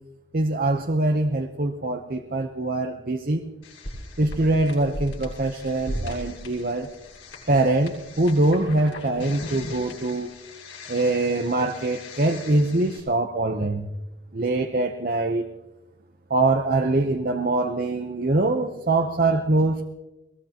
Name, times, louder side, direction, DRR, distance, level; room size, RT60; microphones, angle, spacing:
voice 1, 0.3-3.4 4.2-6.9 7.5-10.3 10.9-13.9 14.3-15.5 16.3-19.8, right 2 dB, 45° right, 5 dB, 0.8 m, -23 dB
sound 1, 3.6-13.0, left 1 dB, 75° left, 7.7 m, -38 dB
23.0 x 20.0 x 2.9 m, 1.0 s
head